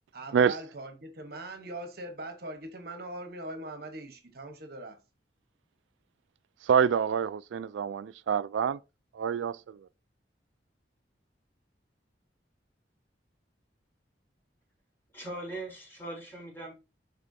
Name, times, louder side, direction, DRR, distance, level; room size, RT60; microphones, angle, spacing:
voice 1, 0.1-5.0, right 1 dB, 55° right, 1.1 m, -41 dB
voice 2, 6.6-8.8 9.1-9.8, right 7 dB, 90° right, 0.3 m, -26 dB
voice 3, 15.1-16.7, right 2 dB, 10° left, 3.6 m, -40 dB
11.5 x 4.2 x 2.7 m
head